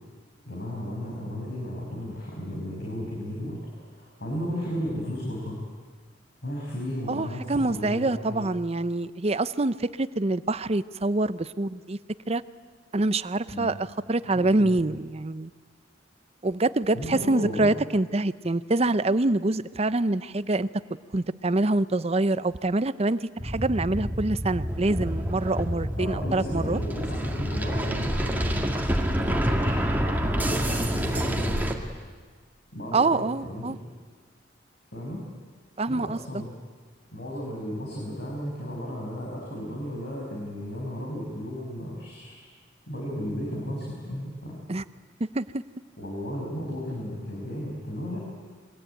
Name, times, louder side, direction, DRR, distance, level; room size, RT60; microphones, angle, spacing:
voice 1, 0.4-5.6 6.4-8.5 13.5-13.7 14.3-14.7 16.9-17.7 26.0-29.8 30.2-31.7 32.7-33.8 34.9-35.2 35.9-36.5 37.1-42.3 42.9-44.6 46.0-48.3, equal, 60° left, -3 dB, 6.2 m, -34 dB
voice 2, 7.1-12.0 12.3-12.4 12.9-15.5 16.4-20.7 21.1-26.8 32.9-33.8 35.8-36.2 44.7-44.8 45.2-45.6, right 2 dB, 35° right, 15 dB, 0.7 m, -25 dB
sound 1, 23.4-31.7, equal, 10° right, 2.2 m, -27 dB
27.5 x 22.5 x 9.2 m, 1.5 s
head